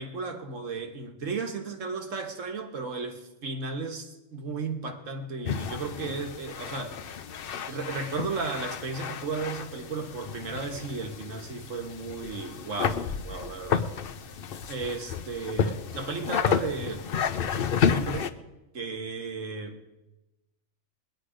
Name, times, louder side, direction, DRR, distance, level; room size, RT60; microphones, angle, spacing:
voice 1, 0.0-7.0 7.7-13.9 14.7-17.0 17.8-18.3 18.7-19.8, right 4 dB, 80° right, 5 dB, 1.8 m, -34 dB
sound 1, 5.4-18.3, left 7 dB, 55° left, 0.7 m, -31 dB
20.5 x 10.0 x 5.1 m, 1.0 s
omnidirectional pair, 1.3 m